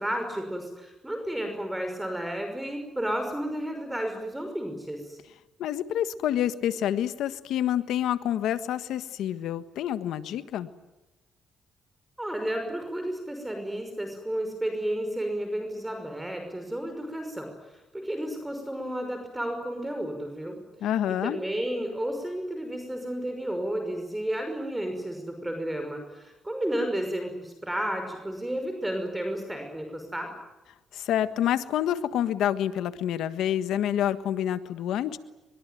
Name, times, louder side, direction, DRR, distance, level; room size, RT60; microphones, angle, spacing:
voice 1, 0.0-5.2 12.2-20.6 21.1-30.3, right 1 dB, 10° right, 5 dB, 5.7 m, -32 dB
voice 2, 5.6-10.7 20.8-21.4 30.9-35.2, left 11 dB, 80° left, 11 dB, 1.6 m, -28 dB
23.0 x 22.5 x 9.2 m, 1.0 s
cardioid pair, 90°, 0 cm